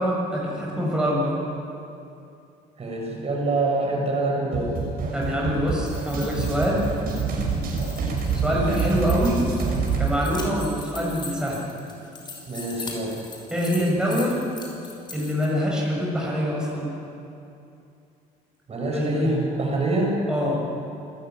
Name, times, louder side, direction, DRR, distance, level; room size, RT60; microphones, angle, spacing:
voice 1, 0.0-1.4 5.1-6.9 8.3-9.5 10.0-11.6 13.5-14.4 15.1-16.9 18.9-19.2 20.3-20.6, equal, 5° right, -4 dB, 6.7 m, -25 dB
voice 2, 2.8-4.7 12.5-13.1 18.7-20.1, right 2 dB, 40° right, -2 dB, 6.8 m, -25 dB
sound 1, 4.5-10.1, right 5 dB, 60° right, 7.2 m, -26 dB
sound 2, 5.7-15.5, left 3 dB, 25° left, 5.6 m, -41 dB
27.0 x 14.5 x 9.5 m, 2.6 s
cardioid pair, 110°, 17 cm